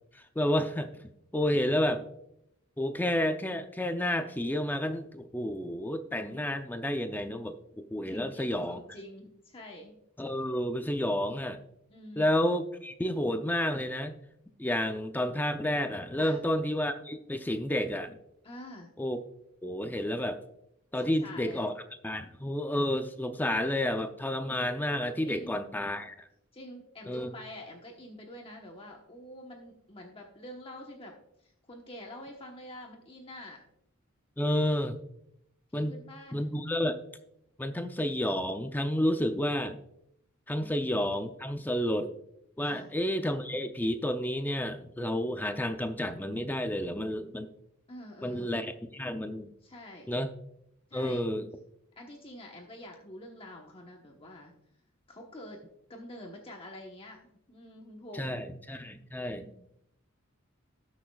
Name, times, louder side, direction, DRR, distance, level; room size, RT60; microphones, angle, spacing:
voice 1, 0.1-0.9 1.3-2.0 2.8-8.8 10.2-11.6 12.2-14.2 14.6-18.2 19.0-19.2 19.6-20.4 20.9-21.7 22.0-26.3 27.0-27.3 34.4-35.0 35.7-36.0 36.3-37.0 37.6-39.8 40.5-42.1 42.6-47.5 48.2-49.5 50.1-50.3 50.9-51.5 58.1-59.4, left 1 dB, 10° left, 7 dB, 0.5 m, -30 dB
voice 2, 8.1-9.9 11.9-12.3 16.2-16.4 18.4-18.9 21.0-21.7 25.2-25.6 26.5-31.1 31.4-33.6 35.7-36.5 40.6-40.7 42.6-42.9 47.9-48.5 49.6-50.1 50.9-51.2 52.0-54.5 55.1-55.6 55.9-57.2 57.5-58.4 59.3-59.6, left 1 dB, 25° left, 0 dB, 1.1 m, -46 dB
19.0 x 6.3 x 2.3 m, 0.76 s
head